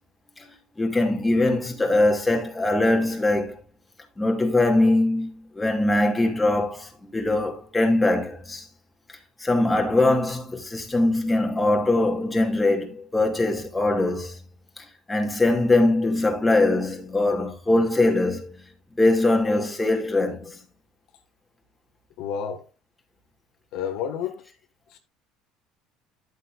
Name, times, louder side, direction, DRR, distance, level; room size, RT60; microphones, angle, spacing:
voice 1, 0.8-3.6 4.2-8.7 9.4-14.4 15.1-18.6 19.0-20.6, left 2 dB, 10° left, 2.7 m, -22 dB
voice 2, 22.2-22.6 23.7-24.4 24.9-25.0, left 8 dB, 70° left, 1.9 m, -30 dB
11.0 x 8.3 x 2.6 m
cardioid pair, 120°, 0 cm